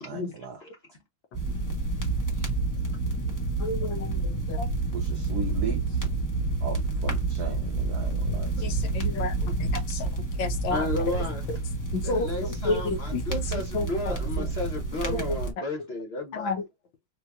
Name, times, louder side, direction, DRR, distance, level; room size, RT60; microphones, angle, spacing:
voice 1, 0.0-0.6 4.9-6.0 6.6-8.8, right 5 dB, 85° right, 0.8 m, -37 dB
sound 1, 1.3-15.5, right 3 dB, 20° left, 0.4 m, -29 dB
voice 2, 3.6-4.7 8.6-9.5 9.9-10.0 10.4-11.2 11.5-11.6 11.9-14.5 15.0-15.4 16.3-16.6, left 3 dB, 70° left, 1.5 m, -31 dB
voice 3, 10.7-11.4 12.0-16.5, left 1 dB, 50° left, 0.7 m, -33 dB
4.4 x 2.2 x 2.3 m
omnidirectional pair, 2.3 m